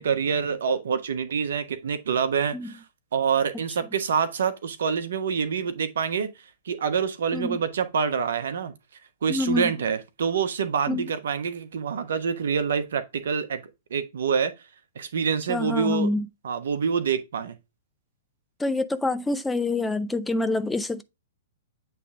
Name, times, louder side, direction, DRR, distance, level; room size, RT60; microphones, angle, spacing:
voice 1, 0.0-2.7 3.1-6.3 6.6-8.7 9.2-13.6 13.9-14.5 14.9-16.1 16.4-17.6, right 6 dB, 65° right, 1.2 m, -26 dB
voice 2, 9.3-9.7 10.9-11.1 15.5-16.3 18.6-21.0, left 2 dB, 5° left, 0.5 m, -26 dB
8.3 x 3.4 x 3.7 m
hypercardioid pair, 115°, 0 cm